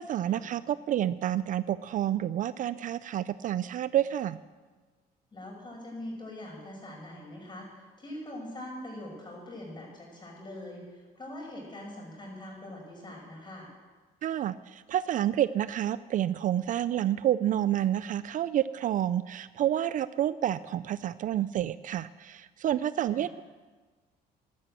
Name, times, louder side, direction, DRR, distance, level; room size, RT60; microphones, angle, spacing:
voice 1, 0.0-4.4 14.2-23.4, right 11 dB, 50° right, 16 dB, 0.4 m, -29 dB
voice 2, 5.3-13.7 23.1-23.3, left 1 dB, 25° left, -1 dB, 6.3 m, -43 dB
13.0 x 12.0 x 7.8 m, 1.4 s
cardioid pair, 110°, 17 cm